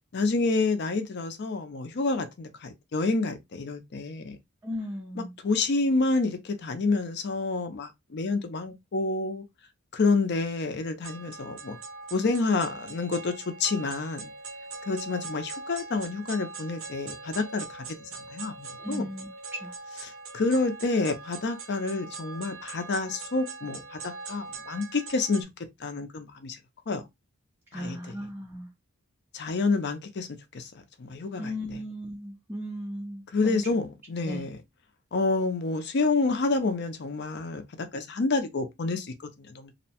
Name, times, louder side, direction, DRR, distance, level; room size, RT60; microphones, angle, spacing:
voice 1, 0.1-4.4 5.4-9.4 9.9-11.8 12.1-14.3 14.9-19.1 20.3-25.5 25.8-26.6 26.9-27.0 27.7-28.0 29.3-30.3 30.5-30.7 31.0-31.5 33.3-34.6 35.1-39.7, left 3 dB, 50° left, 0.5 m, -28 dB
voice 2, 4.6-5.4 18.8-19.7 27.7-28.7 31.4-33.6 34.2-34.4, equal, 10° right, 0.4 m, -36 dB
sound 1, 11.0-25.4, right 3 dB, 65° right, 0.6 m, -42 dB
2.7 x 2.1 x 2.7 m
head